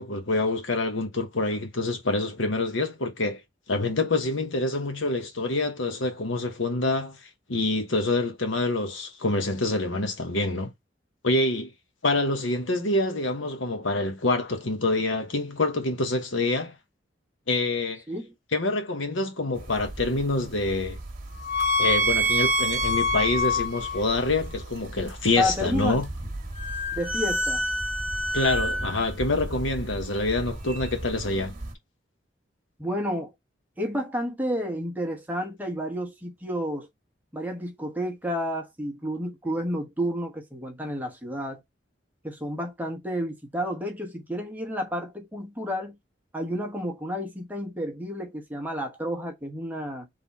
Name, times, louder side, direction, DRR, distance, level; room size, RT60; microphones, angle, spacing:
voice 1, 0.0-3.4 3.7-7.2 7.5-10.7 11.2-11.7 12.0-16.8 17.5-18.0 18.5-21.0 21.8-26.1 28.3-31.5, left 2 dB, 80° left, 1.1 m, -26 dB
sound 1, 19.6-31.7, equal, 45° right, 1.3 m, -28 dB
voice 2, 25.4-26.0 26.9-27.7 32.8-33.3 33.8-36.9 37.3-41.6 42.2-46.0 46.3-50.1, equal, 10° right, 1.0 m, -31 dB
3.8 x 3.4 x 4.0 m
head